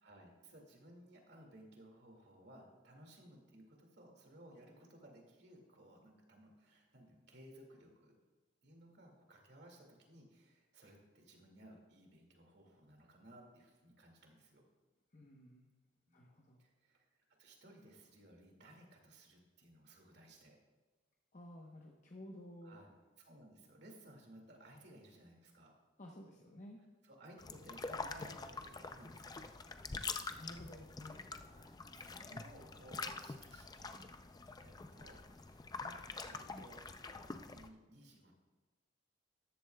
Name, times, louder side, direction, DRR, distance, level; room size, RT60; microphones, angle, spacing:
voice 1, 0.0-8.1 8.6-14.6 16.1-16.3 16.6-17.1 17.4-20.6 22.6-22.9 23.2-25.7 27.0-29.5 31.5-34.0 34.6-36.8 37.1-38.3, right 1 dB, 60° right, 1 dB, 2.2 m, -59 dB
voice 2, 15.1-15.7 16.1-16.6 21.3-22.8 26.0-26.8 30.3-31.2, left 1 dB, 40° left, 0 dB, 0.9 m, -53 dB
sound 1, 27.4-37.7, left 4 dB, 20° left, 0.4 m, -46 dB
14.0 x 11.0 x 2.3 m, 1.3 s
head